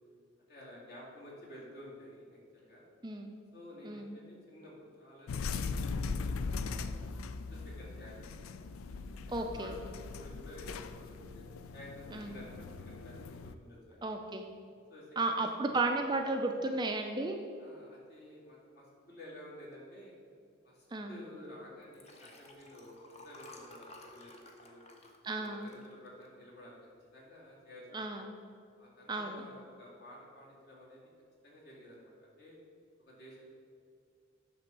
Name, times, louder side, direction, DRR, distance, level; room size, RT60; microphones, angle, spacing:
voice 1, 0.5-2.8 3.5-6.9 7.5-8.2 9.3-14.2 14.9-16.0 17.6-20.1 20.6-24.8 25.3-26.8 27.1-28.1 28.8-31.0 31.4-32.6 33.0-33.4, left 1 dB, 50° left, -5 dB, 2.0 m, -52 dB
voice 2, 3.0-3.4 3.8-4.2 9.3-9.7 12.1-12.4 14.0-14.4 15.2-17.4 20.9-21.2 25.2-25.7 27.9-28.3 29.1-29.4, right 2 dB, 20° right, 4 dB, 0.4 m, -34 dB
sound 1, 5.3-13.5, left 4 dB, 85° left, 0.4 m, -40 dB
Liquid, 21.8-26.5 27.0-27.2 27.5-27.6, left 2 dB, 30° left, 0.7 m, -54 dB
9.0 x 3.4 x 6.6 m, 2.3 s
head